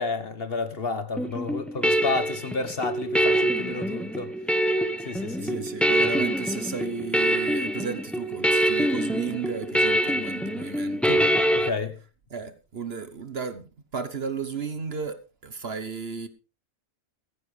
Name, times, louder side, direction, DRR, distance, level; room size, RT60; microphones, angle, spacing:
voice 1, 0.0-4.3 5.0-5.5 11.1-11.3 11.5-12.0, left 3 dB, 45° left, 1.4 m, -30 dB
sound 1, 1.2-11.7, right 1 dB, ahead, 1.0 m, -25 dB
voice 2, 5.4-11.2 12.3-16.3, right 5 dB, 50° right, 1.2 m, -34 dB
16.0 x 14.5 x 3.3 m
omnidirectional pair, 1.5 m